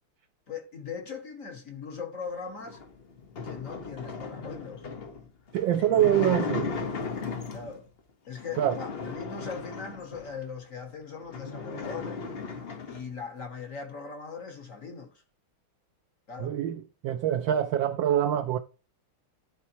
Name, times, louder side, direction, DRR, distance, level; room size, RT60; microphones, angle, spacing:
voice 1, 0.5-2.8 3.4-4.8 7.5-7.9 8.3-12.2 12.9-15.2 16.3-16.6, left 5 dB, 50° left, 1.1 m, -40 dB
sound 1, 2.6-7.8 8.4-10.4 10.9-11.0 11.2-13.1, left 4 dB, 75° left, 0.5 m, -36 dB
voice 2, 5.5-6.7 8.6-8.7 16.4-18.6, right 11 dB, 75° right, 1.2 m, -25 dB
11.5 x 4.3 x 2.8 m
omnidirectional pair, 2.4 m